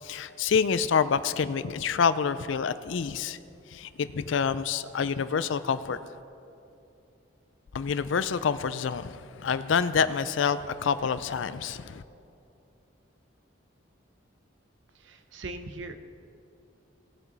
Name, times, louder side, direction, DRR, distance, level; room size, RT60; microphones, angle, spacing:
voice 1, 0.0-3.4 3.7-6.1 7.7-12.0, left 6 dB, 75° left, 14 dB, 0.4 m, -27 dB
voice 2, 14.9-15.9, right 2 dB, 70° right, 8 dB, 0.8 m, -40 dB
18.5 x 7.1 x 4.0 m, 2.7 s
head